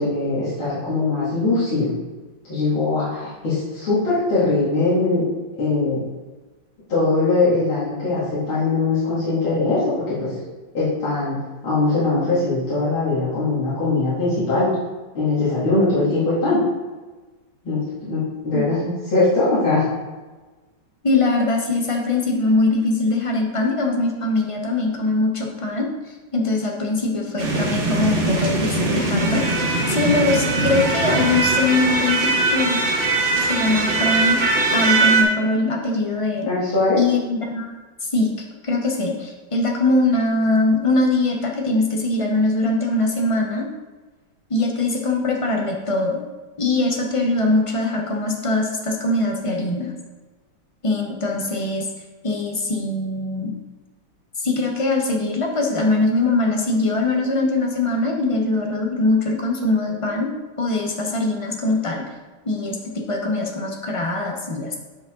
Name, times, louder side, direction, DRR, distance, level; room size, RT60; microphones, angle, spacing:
voice 1, 0.0-1.9 2.4-5.3 5.6-6.0 6.9-10.4 10.7-11.4 11.6-14.7 15.1-16.6 17.6-19.8 36.5-37.0, left 3 dB, 85° left, -11 dB, 3.3 m, -21 dB
voice 2, 21.0-25.9 26.3-32.8 33.4-34.4 34.7-36.5 37.0-37.7 38.0-38.3 38.6-43.7 44.5-46.2 46.6-49.9 50.8-51.9 52.2-53.5 54.4-60.3 60.6-62.0 62.4-64.8, left 2 dB, 30° left, 1 dB, 0.6 m, -22 dB
sound 1, 27.4-35.2, right 3 dB, 35° right, 1.0 m, -20 dB
10.0 x 5.0 x 3.8 m, 1.2 s
omnidirectional pair, 2.2 m